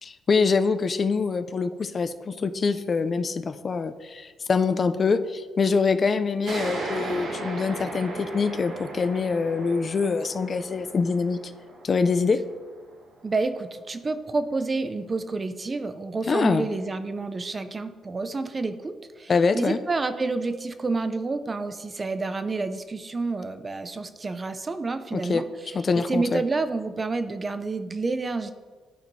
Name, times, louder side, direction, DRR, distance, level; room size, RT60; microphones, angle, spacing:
voice 1, 0.0-11.4 11.8-12.4 16.3-16.7 19.3-19.8 25.1-25.4 25.7-26.4, left 4 dB, 40° left, 10 dB, 0.4 m, -24 dB
sound 1, 6.4-13.6, right 2 dB, 75° right, 1.3 m, -36 dB
voice 2, 13.2-25.5 25.9-28.5, right 3 dB, 30° right, 10 dB, 0.4 m, -29 dB
11.5 x 4.3 x 2.7 m, 1.5 s
cardioid pair, 90°, 0 cm